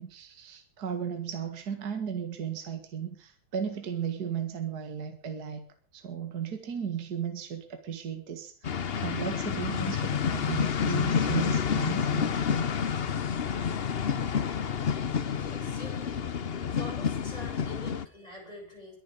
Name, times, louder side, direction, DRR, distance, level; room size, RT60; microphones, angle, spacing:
voice 1, 0.0-5.7 5.9-12.3, right 8 dB, 50° right, 6 dB, 2.3 m, -35 dB
sound 1, 8.6-18.0, left 7 dB, 70° left, 0.5 m, -29 dB
voice 2, 15.3-16.2 16.6-19.0, left 1 dB, 15° left, -1 dB, 8.1 m, -45 dB
22.0 x 10.5 x 5.3 m, 0.42 s
omnidirectional pair, 2.3 m